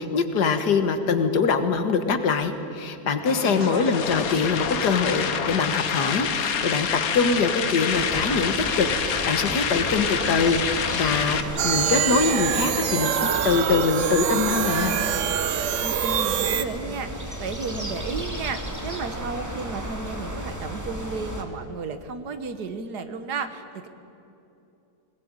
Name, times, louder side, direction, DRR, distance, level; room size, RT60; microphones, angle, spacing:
voice 1, 0.0-14.9, left 5 dB, 80° left, 8 dB, 2.0 m, -24 dB
sound 1, 3.3-11.4, left 7 dB, 60° left, 1.4 m, -27 dB
voice 2, 3.4-4.2 15.8-23.9, right 4 dB, 75° right, 9 dB, 1.9 m, -33 dB
sound 2, 7.9-21.4, equal, 10° right, 2.1 m, -34 dB
sound 3, 11.6-16.6, right 9 dB, 55° right, 1.1 m, -25 dB
21.5 x 19.0 x 8.9 m, 2.8 s
omnidirectional pair, 1.7 m